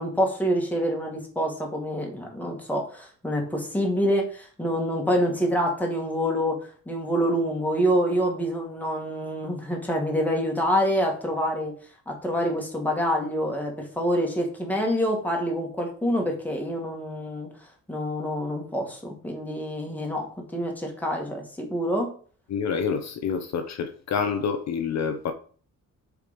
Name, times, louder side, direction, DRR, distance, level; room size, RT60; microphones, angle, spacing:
voice 1, 0.0-6.6 6.9-11.7 12.1-17.5 17.9-20.3 20.5-22.1, equal, 5° left, 1.8 m, -26 dB
voice 2, 22.5-25.3, left 6 dB, 60° left, 0.7 m, -27 dB
6.6 x 4.7 x 5.1 m
wide cardioid pair, 155°, 31 cm